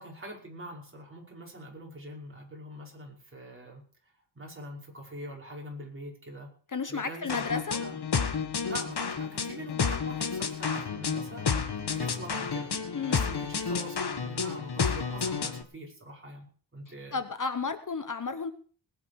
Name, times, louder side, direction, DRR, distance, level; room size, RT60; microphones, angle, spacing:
voice 1, 0.0-3.8 4.4-6.5 6.9-8.0 8.6-17.2, right 1 dB, 30° right, -2 dB, 5.5 m, -44 dB
voice 2, 6.7-7.8 12.9-13.2 17.1-18.5, left 5 dB, 45° left, 10 dB, 1.0 m, -32 dB
sound 1, 7.3-15.6, left 5 dB, 60° left, 1.7 m, -31 dB
20.0 x 9.9 x 4.8 m, 0.44 s
wide cardioid pair, 130°, 44 cm